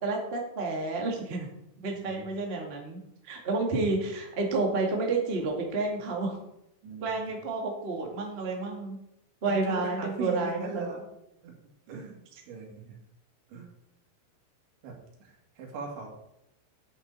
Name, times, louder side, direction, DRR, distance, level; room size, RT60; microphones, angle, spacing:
voice 1, 0.0-1.5 1.8-3.0 3.2-6.4 7.0-9.0 9.4-11.0, right 3 dB, 55° right, 0 dB, 0.6 m, -30 dB
voice 2, 1.9-2.3 6.8-7.3 9.5-11.1 11.4-11.5 11.9-12.2 12.5-13.0 13.5-13.7 14.8-16.1, right 4 dB, 80° right, 0 dB, 4.5 m, -40 dB
10.0 x 9.2 x 4.1 m, 0.82 s
omnidirectional pair, 5.2 m